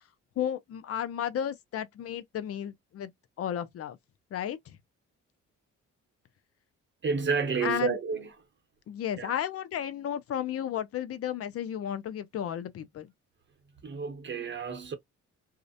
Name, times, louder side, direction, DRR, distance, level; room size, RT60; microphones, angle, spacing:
voice 1, 0.4-3.1 3.4-4.0 4.3-4.8 7.6-8.0 8.9-13.1, left 9 dB, 50° left, 0.5 m, -33 dB
voice 2, 7.0-8.3 9.2-9.3 13.8-14.9, right 5 dB, 40° right, 0.8 m, -30 dB
2.4 x 2.1 x 2.6 m
cardioid pair, 90°, 30 cm